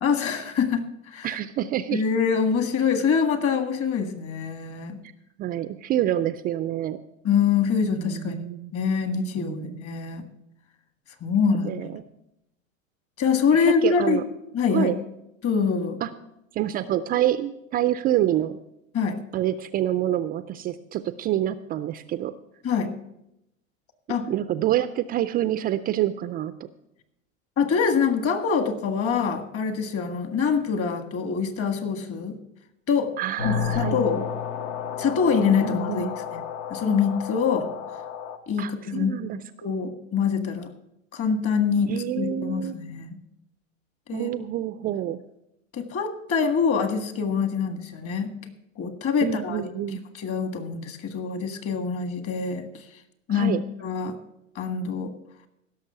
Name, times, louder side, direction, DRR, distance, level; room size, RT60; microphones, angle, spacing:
voice 1, 0.0-1.4 1.9-5.0 7.2-8.4 8.7-10.2 11.2-11.9 13.2-14.2 14.5-14.9 15.4-16.0 18.9-19.2 22.6-22.9 24.1-24.3 27.6-32.4 32.9-33.1 33.4-34.3 35.0-36.1 36.3-36.4 36.7-37.7 38.5-39.1 39.6-40.7 41.1-43.2 44.1-44.3 45.7-48.3 48.8-49.6 50.1-52.7 53.3-53.5 53.8-54.2 54.6-55.1, left 6 dB, 35° left, 8 dB, 1.7 m, -25 dB
voice 2, 1.2-2.0 5.4-7.0 8.0-8.7 9.4-9.8 11.6-12.0 13.8-14.2 14.7-15.0 16.0-16.1 16.5-18.6 19.3-22.3 24.3-26.5 33.2-34.0 35.6-36.1 38.6-39.4 41.9-42.8 44.1-45.2 49.2-50.0 53.3-53.6, right 12 dB, 25° right, 12 dB, 0.4 m, -27 dB
sound 1, 33.4-38.4, left 7 dB, 65° left, 1.3 m, -31 dB
16.5 x 6.6 x 6.7 m, 0.84 s
hypercardioid pair, 105°, 39 cm